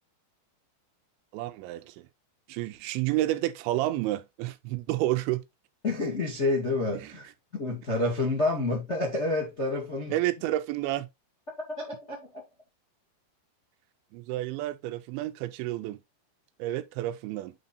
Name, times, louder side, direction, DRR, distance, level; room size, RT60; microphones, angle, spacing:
voice 1, 1.3-2.1 2.5-5.4 7.0-7.1 10.1-11.1 14.1-16.0 16.6-17.5, right 15 dB, 85° right, 2.9 m, -30 dB
voice 2, 5.8-10.2 11.8-12.4, left 2 dB, 35° left, 1.1 m, -29 dB
9.6 x 3.9 x 4.1 m
omnidirectional pair, 5.3 m